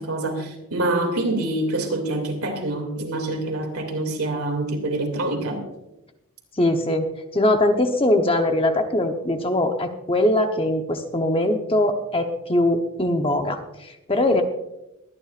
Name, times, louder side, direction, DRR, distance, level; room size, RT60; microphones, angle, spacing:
voice 1, 0.0-5.6, right 2 dB, 85° right, 3 dB, 2.6 m, -26 dB
voice 2, 6.6-7.1 7.3-14.4, left 1 dB, 25° left, 5 dB, 0.9 m, -21 dB
22.5 x 10.0 x 2.5 m, 0.92 s
head